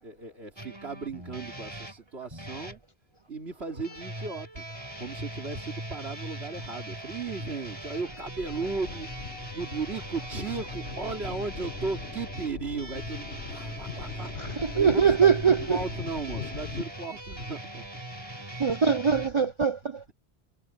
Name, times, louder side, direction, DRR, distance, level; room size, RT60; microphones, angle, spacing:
voice 1, 0.0-2.8 3.3-4.6 5.0-18.6 19.1-19.5, right 4 dB, 80° right, 3.1 m, -36 dB
sound 1, 0.6-2.8 3.8-19.3, right 1 dB, 25° right, 4.8 m, -40 dB
sound 2, 8.1-16.8, left 6 dB, 75° left, 1.5 m, -41 dB
voice 2, 14.6-15.8 18.6-20.1, right 6 dB, 45° right, 0.4 m, -22 dB
omnidirectional pair, 1.1 m